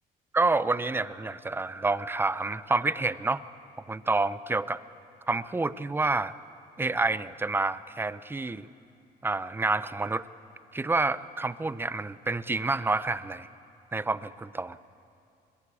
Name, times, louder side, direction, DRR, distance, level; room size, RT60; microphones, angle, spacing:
voice 1, 0.3-3.4 3.9-4.8 5.3-6.3 6.8-8.7 9.2-10.3 10.7-13.5 13.9-14.8, right 3 dB, 15° right, 16 dB, 0.6 m, -28 dB
21.0 x 21.0 x 8.5 m, 2.6 s
cardioid pair, 110°, 17 cm